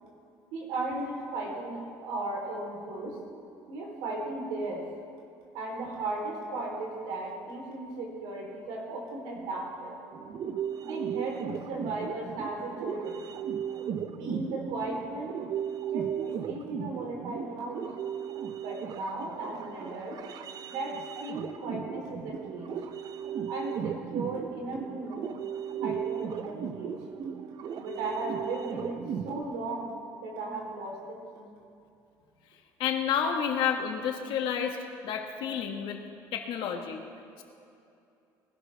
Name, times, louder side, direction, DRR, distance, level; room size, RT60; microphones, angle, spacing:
voice 1, 0.5-3.2 3.7-4.8 5.5-10.0 10.8-13.2 14.1-15.4 15.9-17.8 18.6-20.2 20.7-22.7 23.5-25.3 25.8-26.9 27.8-29.9 30.2-31.5 33.2-33.3, right 2 dB, 90° right, -1 dB, 3.6 m, -36 dB
sound 1, 10.1-29.4, right 8 dB, 50° right, 0.7 m, -36 dB
voice 2, 32.8-34.8 35.0-36.0 36.3-37.0 37.4-37.5, left 8 dB, 70° left, 4 dB, 1.5 m, -30 dB
20.0 x 12.0 x 3.4 m, 2.6 s
cardioid pair, 110°, 8 cm